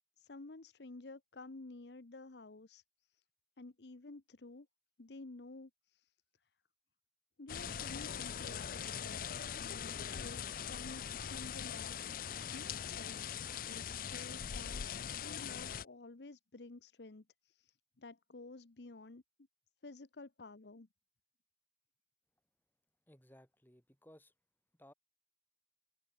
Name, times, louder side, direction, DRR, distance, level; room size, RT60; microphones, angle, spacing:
voice 1, 0.2-2.8 3.6-4.7 5.0-5.7 7.4-9.3 9.6-11.9 12.5-13.4 13.7-14.8 15.1-17.2 18.0-19.2 19.8-20.9, left 2 dB, 70° left, 0.9 m, -52 dB
sound 1, 7.5-15.8, left 8 dB, 50° left, 0.5 m, -41 dB
voice 2, 23.1-24.3 24.7-24.9, equal, 10° left, 6.0 m, -61 dB
head